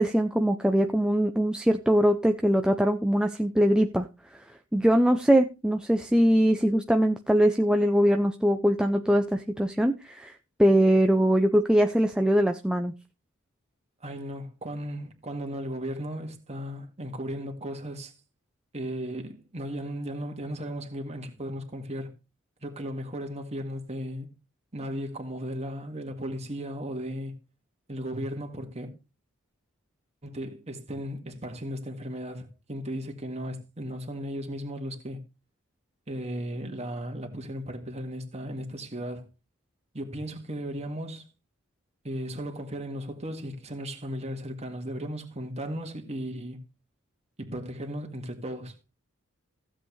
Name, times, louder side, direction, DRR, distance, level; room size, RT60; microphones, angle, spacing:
voice 1, 0.0-4.1 4.7-10.3 10.6-12.9, equal, 5° right, 0.5 m, -22 dB
voice 2, 14.0-18.1 18.7-22.1 22.6-24.3 24.7-27.4 27.9-28.9 30.2-35.2 36.1-39.3 39.9-41.3 42.0-46.6 47.4-48.7, equal, 30° right, 1.9 m, -36 dB
15.5 x 7.8 x 3.2 m
head